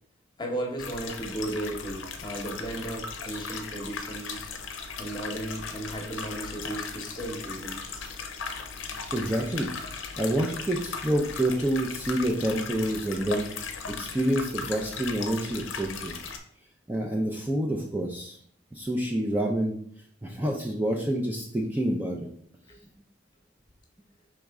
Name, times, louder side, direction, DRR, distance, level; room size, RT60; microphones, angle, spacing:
voice 1, 0.4-4.5 5.0-7.8 22.7-22.8, right 1 dB, 25° left, 1 dB, 0.9 m, -35 dB
sound 1, 0.8-16.4, left 5 dB, 75° left, 0.6 m, -37 dB
voice 2, 9.1-9.7 10.2-13.5 13.9-16.1 16.9-18.4 18.7-19.8 20.2-22.3, right 1 dB, 10° right, -1 dB, 0.4 m, -28 dB
4.8 x 3.1 x 3.5 m, 0.62 s
head